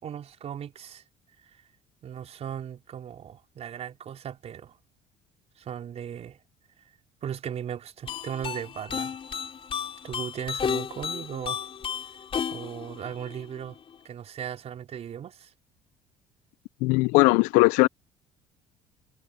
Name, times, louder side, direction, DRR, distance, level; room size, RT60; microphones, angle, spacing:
voice 1, 0.0-1.0 1.5-1.6 2.0-4.8 5.6-6.4 7.2-9.2 10.0-11.6 12.5-13.8 14.0-15.5, right 9 dB, 50° right, 4.3 m, -37 dB
sound 1, 8.1-14.0, left 7 dB, 40° left, 2.7 m, -33 dB
voice 2, 16.8-17.9, left 26 dB, 75° left, 0.5 m, -19 dB
hypercardioid pair, 70°, 14 cm